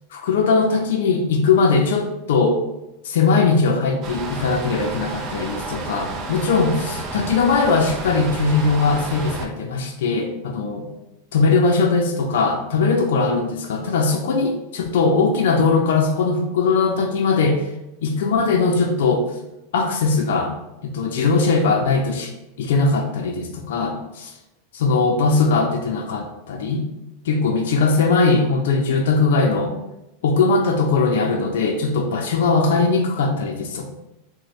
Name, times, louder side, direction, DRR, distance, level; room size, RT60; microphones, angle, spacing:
voice 1, 0.1-2.6 3.0-10.9 11.3-17.6 18.0-19.3 19.7-20.5 20.8-22.3 22.6-24.3 24.7-26.9 27.2-29.7 30.2-33.8, left 4 dB, 80° left, 2 dB, 0.4 m, -20 dB
sound 1, 4.0-9.5, right 3 dB, 40° right, 0.4 m, -31 dB
2.9 x 2.1 x 4.1 m, 0.95 s
supercardioid pair, 130°, 0 cm